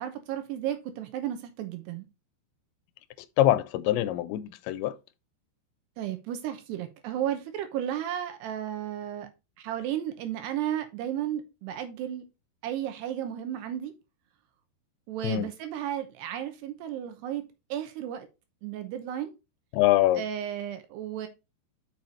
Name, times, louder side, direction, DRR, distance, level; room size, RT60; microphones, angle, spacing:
voice 1, 0.0-2.1 6.0-9.3 9.6-12.2 12.6-13.9 15.1-17.4 17.7-18.3 18.6-19.3 20.2-21.3, right 11 dB, 75° right, 2.8 m, -33 dB
voice 2, 3.4-5.0 15.2-15.5 19.7-20.2, left 14 dB, 85° left, 2.8 m, -24 dB
6.5 x 6.5 x 4.1 m
omnidirectional pair, 5.2 m